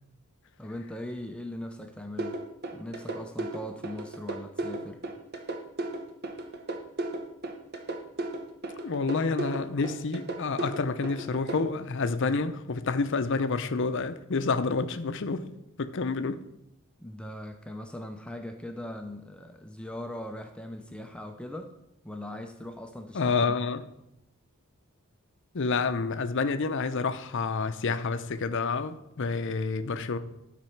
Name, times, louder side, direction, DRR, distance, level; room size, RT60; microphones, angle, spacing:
voice 1, 0.6-2.4 2.7-5.0 17.0-21.7 22.0-23.7, left 1 dB, 5° left, 0.5 m, -40 dB
sound 1, 2.2-11.6, right 2 dB, 45° right, 1.0 m, -34 dB
voice 2, 8.8-15.5 15.8-16.4 23.1-23.8 25.5-30.2, left 4 dB, 60° left, 0.6 m, -28 dB
12.0 x 4.2 x 5.8 m
head